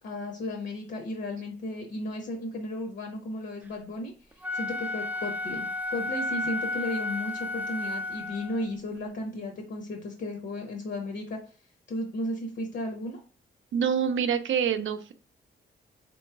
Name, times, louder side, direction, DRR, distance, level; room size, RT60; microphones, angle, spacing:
voice 1, 0.0-4.1 4.5-11.4 11.9-13.2, left 1 dB, 65° left, 3 dB, 0.8 m, -34 dB
Wind instrument woodwind instrument, 4.3-8.7, left 2 dB, 10° right, 0.3 m, -32 dB
voice 2, 13.7-15.1, right 7 dB, 85° right, 9 dB, 0.5 m, -26 dB
3.9 x 3.1 x 3.4 m, 0.37 s
wide cardioid pair, 160°, 20 cm